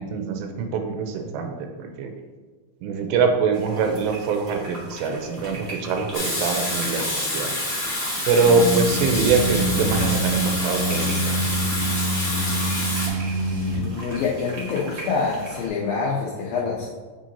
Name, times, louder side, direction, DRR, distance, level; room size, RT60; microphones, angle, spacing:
voice 1, 0.0-2.1 2.8-7.5 8.3-11.5, right 4 dB, 85° right, 4 dB, 2.8 m, -24 dB
sound 1, 3.5-15.7, right 2 dB, 45° right, 1.5 m, -40 dB
Water tap faucet / Sink (filling or washing), 6.1-13.1, left 1 dB, 30° left, 1.4 m, -27 dB
sound 2, 8.4-13.8, right 1 dB, 30° right, 1.8 m, -25 dB
voice 2, 13.7-16.9, left 5 dB, 80° left, -4 dB, 2.1 m, -26 dB
7.6 x 7.5 x 2.8 m, 1.4 s
omnidirectional pair, 5.1 m